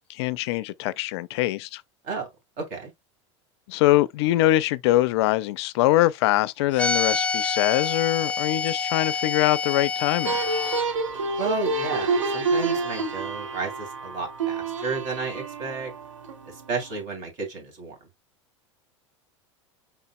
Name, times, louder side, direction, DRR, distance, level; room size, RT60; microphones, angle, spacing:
voice 1, 0.1-1.8 3.7-10.4, left 16 dB, 60° left, 0.4 m, -23 dB
voice 2, 2.6-2.9 11.4-15.9 16.7-17.9, right 4 dB, 50° right, 2.7 m, -32 dB
sound 1, 6.8-10.8, left 4 dB, 5° left, 0.6 m, -27 dB
sound 2, 10.2-17.0, right 3 dB, 85° right, 1.1 m, -28 dB
5.6 x 4.0 x 2.2 m
hypercardioid pair, 85°, 16 cm